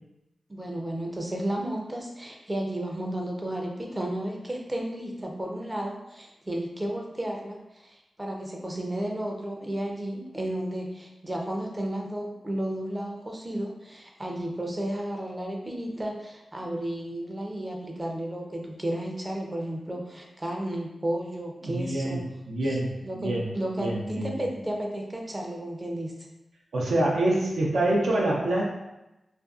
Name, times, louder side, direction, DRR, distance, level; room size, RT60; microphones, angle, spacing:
voice 1, 0.5-22.3 22.7-22.8 23.0-26.1, right 1 dB, 25° right, 0 dB, 0.5 m, -33 dB
voice 2, 21.6-22.2 22.5-23.5 23.8-24.4 26.7-28.6, right 1 dB, 85° right, -3 dB, 0.5 m, -26 dB
2.5 x 2.2 x 2.4 m, 0.95 s
cardioid pair, 50°, 0 cm